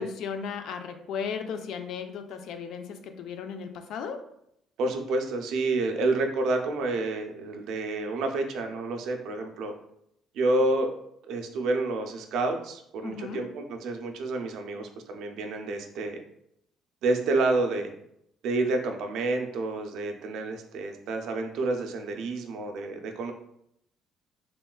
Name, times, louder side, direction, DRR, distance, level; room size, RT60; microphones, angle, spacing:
voice 1, 0.0-4.3 13.0-13.5, left 6 dB, 65° left, 7 dB, 0.3 m, -36 dB
voice 2, 4.8-9.7 10.3-10.9 11.3-16.2 17.0-17.9 18.4-23.3, right 2 dB, 70° right, 4 dB, 0.4 m, -29 dB
3.5 x 2.2 x 2.3 m, 0.74 s
cardioid pair, 160°, 0 cm